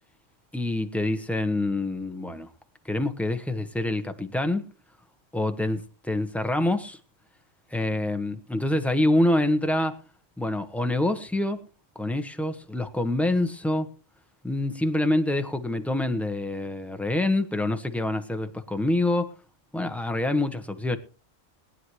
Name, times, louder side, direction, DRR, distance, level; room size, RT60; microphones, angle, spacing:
voice 1, 0.5-2.5 2.8-4.7 5.3-7.0 7.7-10.0 10.4-11.6 11.9-13.9 14.4-19.4 19.7-21.0, left 1 dB, ahead, 1.0 m, -26 dB
21.0 x 9.8 x 3.1 m
omnidirectional pair, 1.3 m